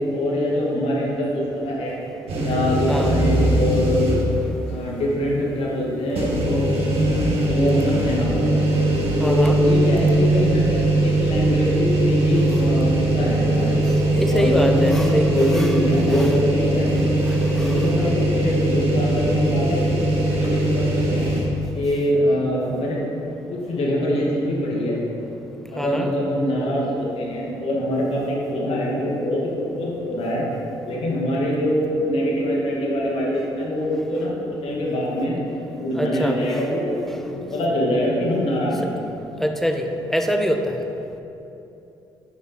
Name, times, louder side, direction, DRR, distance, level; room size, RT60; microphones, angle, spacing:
voice 1, 0.0-2.0 2.3-4.2 4.7-6.9 7.5-8.6 9.1-13.8 14.2-16.9 17.5-21.3 21.7-23.0 23.5-25.0 25.7-30.4 30.8-35.4 35.7-36.9 37.3-38.9, left 1 dB, 65° left, -3 dB, 1.9 m, -24 dB
sound 1, 2.3-4.4 4.9-5.0 6.1-21.4, right 1 dB, 65° right, 1.7 m, -20 dB
voice 2, 9.2-9.6 14.1-15.8 16.1-16.3 17.3-18.1 25.8-26.1 35.9-36.6 39.4-40.8, equal, 5° left, 5 dB, 0.9 m, -25 dB
9.0 x 5.6 x 4.2 m, 2.9 s
hypercardioid pair, 50°, 11 cm